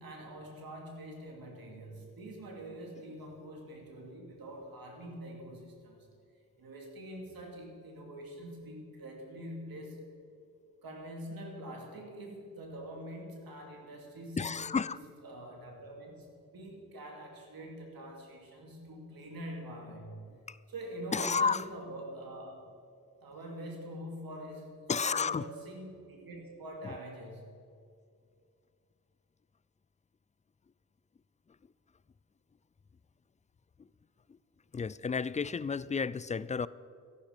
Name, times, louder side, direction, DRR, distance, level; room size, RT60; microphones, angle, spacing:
voice 1, 0.0-6.1 6.6-10.0 10.8-14.8 15.2-20.4 20.7-22.7 23.2-27.6, right 1 dB, 85° right, 1 dB, 2.6 m, -45 dB
voice 2, 14.4-15.0 20.5-20.6 21.1-21.6 24.9-25.5 26.8-26.9 33.8-33.9 34.3-34.4 34.7-36.7, left 5 dB, 20° left, 19 dB, 0.3 m, -31 dB
13.5 x 11.5 x 5.1 m, 2.4 s
cardioid pair, 65°, 35 cm